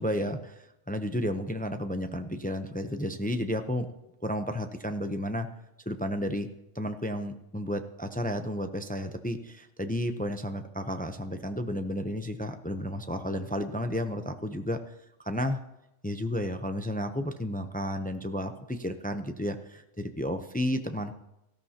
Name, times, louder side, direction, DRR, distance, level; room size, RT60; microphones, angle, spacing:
voice 1, 0.0-3.9 4.2-5.5 5.9-6.5 6.7-14.8 15.2-15.6 16.0-21.1, equal, 15° left, 7 dB, 0.3 m, -32 dB
18.0 x 13.5 x 2.9 m, 0.89 s
omnidirectional pair, 1.3 m